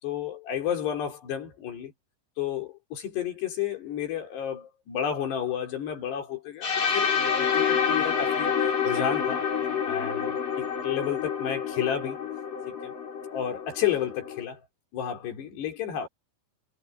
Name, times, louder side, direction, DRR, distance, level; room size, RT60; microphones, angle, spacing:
voice 1, 0.0-1.9 2.4-8.5 8.8-9.5 9.8-12.2 12.8-12.9 13.3-14.6 14.9-16.1, left 9 dB, 85° left, 5.9 m, -31 dB
sound 1, 6.6-14.4, left 7 dB, 55° left, 7.4 m, -28 dB
omnidirectional pair, 4.7 m